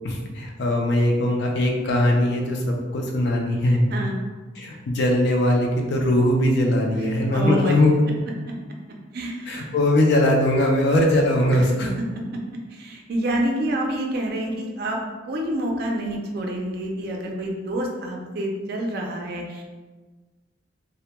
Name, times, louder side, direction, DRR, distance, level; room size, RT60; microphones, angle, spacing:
voice 1, 0.0-3.8 4.6-8.0 9.5-11.9, left 1 dB, 60° left, 1 dB, 0.4 m, -20 dB
voice 2, 7.3-7.8 9.1-9.7 11.5-11.7 12.3-12.4 12.7-15.0 15.2-19.6, right 1 dB, 55° right, 1 dB, 0.4 m, -27 dB
2.1 x 2.1 x 2.9 m, 1.3 s
head